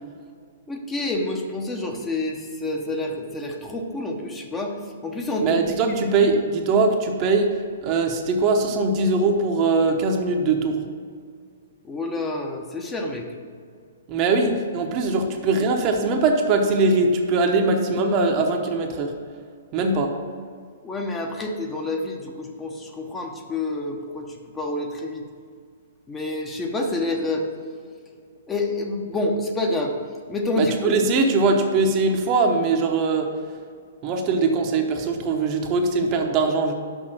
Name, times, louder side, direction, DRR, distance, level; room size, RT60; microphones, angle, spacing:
voice 1, 0.7-4.8 5.0-6.0 6.2-6.3 11.8-13.2 20.8-25.2 26.1-27.5 28.5-30.0 30.3-31.0, left 2 dB, 15° left, 2 dB, 0.9 m, -28 dB
voice 2, 5.4-7.5 7.8-10.8 14.1-19.1 19.7-20.1 30.6-33.3 34.0-36.7, right 3 dB, 35° right, 3 dB, 0.9 m, -21 dB
6.3 x 5.7 x 6.2 m, 2.1 s
figure-of-eight pair, 120°, 0 cm